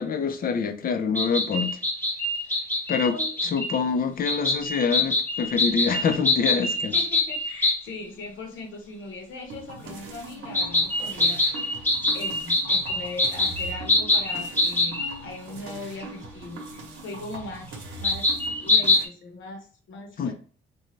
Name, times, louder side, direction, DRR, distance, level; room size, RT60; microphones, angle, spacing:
voice 1, 0.0-1.8 2.9-3.2 3.5-6.9 20.2-20.3, left 6 dB, 45° left, 0.5 m, -25 dB
sound 1, 1.2-3.8 4.3-7.8 10.5-15.1 16.0-16.1 18.0-19.1, left 2 dB, 10° left, 0.8 m, -24 dB
voice 2, 6.9-11.8 12.1-18.3 18.6-20.3, left 3 dB, 75° left, 1.0 m, -39 dB
sound 2, 9.5-19.0, right 3 dB, 75° right, 0.9 m, -41 dB
2.6 x 2.3 x 3.1 m
cardioid pair, 90°, 20 cm